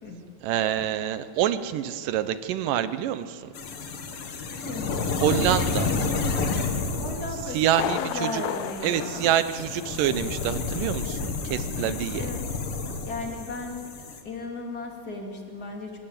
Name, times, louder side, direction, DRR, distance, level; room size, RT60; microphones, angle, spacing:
voice 1, 0.4-3.5 5.2-5.9 7.5-8.4 8.8-12.3, right 11 dB, 75° right, 12 dB, 2.4 m, -26 dB
sound 1, 3.5-14.2, left 4 dB, 50° left, 2.1 m, -30 dB
voice 2, 4.6-5.1 6.5-9.4 11.8-12.4 13.0-13.9 14.2-16.0, left 2 dB, 30° left, 1 dB, 3.0 m, -36 dB
Thunder, 7.7-10.3 10.6-10.7 11.2-11.3, left 12 dB, 80° left, 2.5 m, -34 dB
25.0 x 16.5 x 8.9 m, 2.5 s
omnidirectional pair, 4.0 m